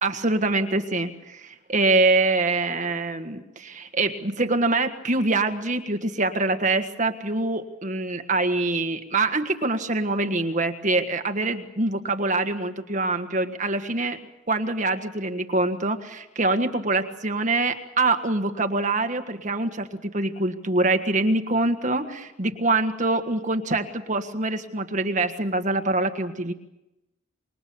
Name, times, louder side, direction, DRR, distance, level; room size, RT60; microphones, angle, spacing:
voice 1, 0.0-14.2 14.5-26.5, right 2 dB, 40° right, 7 dB, 1.7 m, -24 dB
26.5 x 22.5 x 7.1 m, 0.92 s
head